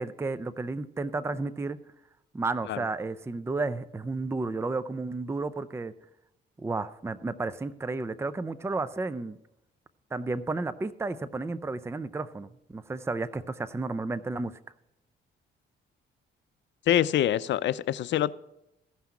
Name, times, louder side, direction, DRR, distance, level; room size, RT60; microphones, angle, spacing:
voice 1, 0.0-1.8 2.3-5.9 6.6-9.4 10.1-14.5, right 3 dB, 15° right, 15 dB, 0.5 m, -32 dB
voice 2, 16.9-18.3, left 11 dB, 65° left, 17 dB, 0.5 m, -25 dB
15.5 x 5.7 x 5.9 m, 0.87 s
cardioid pair, 90°, 20 cm